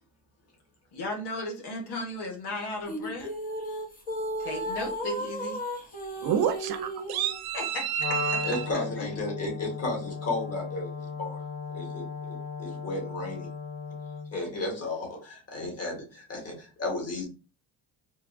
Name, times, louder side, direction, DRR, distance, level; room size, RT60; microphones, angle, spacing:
voice 1, 0.9-3.3 4.4-5.6 7.5-9.1, left 2 dB, 70° left, 1.3 m, -36 dB
sound 1, 2.9-7.4, right 1 dB, 20° left, 1.0 m, -34 dB
voice 2, 6.2-8.7, right 9 dB, 65° right, 0.7 m, -29 dB
Wind instrument woodwind instrument, 8.0-14.3, left 4 dB, 55° left, 1.5 m, -36 dB
voice 3, 8.4-11.4 11.7-13.5 14.3-17.3, left 2 dB, 35° left, 1.8 m, -34 dB
3.8 x 2.3 x 2.5 m
supercardioid pair, 70°, 41 cm